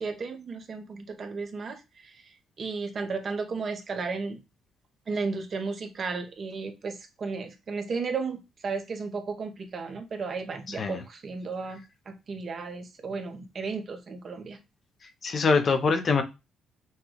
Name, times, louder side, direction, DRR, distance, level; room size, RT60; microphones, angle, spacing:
voice 1, 0.0-2.2 2.6-4.4 5.1-14.6, right 4 dB, 45° right, 1.0 m, -34 dB
voice 2, 10.7-11.0 15.0-16.2, left 4 dB, 50° left, 0.7 m, -24 dB
5.8 x 2.3 x 3.1 m
cardioid pair, 90°, 0 cm